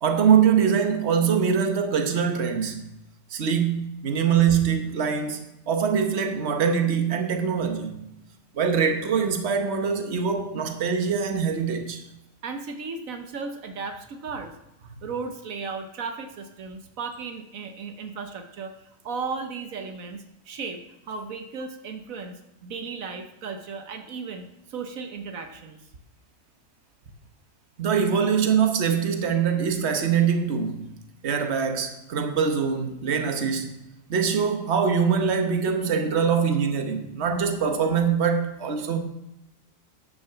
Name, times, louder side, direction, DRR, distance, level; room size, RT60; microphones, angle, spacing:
voice 1, 0.0-2.8 3.3-8.0 8.5-12.0 27.8-30.9 31.2-33.8 34.1-39.0, right 7 dB, 55° right, 1.4 m, -23 dB
voice 2, 12.4-14.5 15.0-18.7 19.0-20.8 21.1-25.8, right 4 dB, 80° right, 1.4 m, -35 dB
11.0 x 6.3 x 6.9 m
omnidirectional pair, 1.4 m